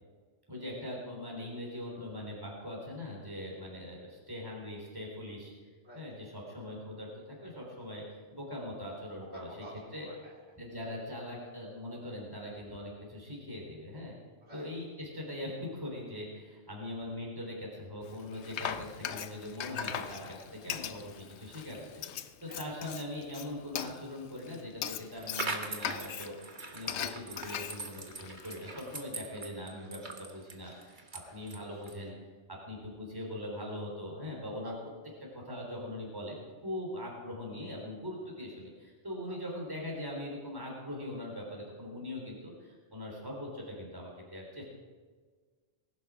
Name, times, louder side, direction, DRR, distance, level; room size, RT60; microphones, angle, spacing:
voice 1, 0.5-5.5 5.9-9.5 9.9-10.1 10.6-14.1 14.5-26.3 26.7-31.0 31.3-32.1 32.7-34.7 35.3-36.4 36.6-44.6, left 1 dB, 20° right, -2 dB, 3.8 m, -41 dB
voice 2, 9.3-10.4 14.4-14.7 22.5-22.6 31.2-31.3 34.6-34.8, right 1 dB, 65° right, -4 dB, 4.2 m, -49 dB
Frying (food), 18.1-29.0, left 8 dB, 75° left, 1.0 m, -40 dB
sound 1, 25.1-32.1, right 3 dB, 45° right, 1.5 m, -42 dB
19.5 x 11.5 x 4.9 m, 1.5 s
omnidirectional pair, 1.2 m